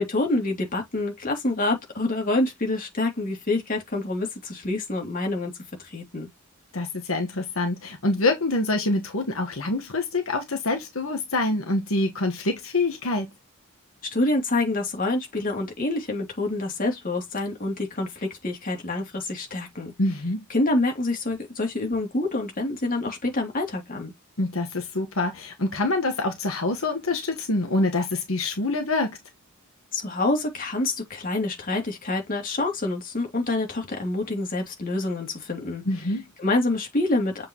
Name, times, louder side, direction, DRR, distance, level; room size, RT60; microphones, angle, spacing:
voice 1, 0.0-5.5 5.8-6.3 14.0-19.9 20.5-24.1 29.9-35.8 36.4-37.5, left 2 dB, 40° left, 2.9 m, -27 dB
voice 2, 6.7-13.3 20.0-20.4 24.4-29.2 35.8-36.2, left 2 dB, 80° left, 1.5 m, -26 dB
7.6 x 4.7 x 3.0 m
head